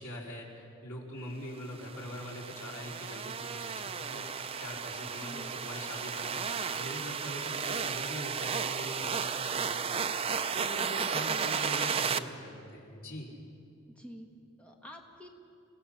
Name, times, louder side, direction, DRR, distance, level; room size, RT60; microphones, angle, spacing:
voice 1, 0.0-13.3, equal, 90° left, -3 dB, 4.2 m, -43 dB
sound 1, 1.8-12.2, right 6 dB, 25° right, 0.5 m, -34 dB
voice 2, 5.0-5.5 11.2-11.5 14.0-14.3 14.6-15.3, equal, 5° left, 1 dB, 1.4 m, -48 dB
29.5 x 17.0 x 5.8 m, 2.6 s
head